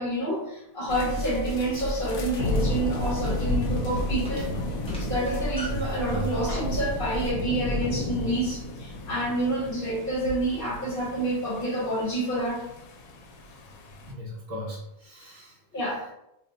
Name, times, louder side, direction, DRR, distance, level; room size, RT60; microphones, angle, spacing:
voice 1, 0.0-4.6 5.0-12.6 15.7-16.0, right 1 dB, 45° left, -4 dB, 1.2 m, -28 dB
sound 1, 0.9-7.3, equal, 65° left, 0.5 m, -33 dB
sound 2, 1.8-5.9, equal, 10° left, 0.4 m, -44 dB
sound 3, 2.4-14.1, left 1 dB, 90° left, 1.0 m, -33 dB
voice 2, 14.0-16.0, equal, 60° right, -5 dB, 1.0 m, -37 dB
2.7 x 2.1 x 3.8 m, 0.83 s
omnidirectional pair, 1.4 m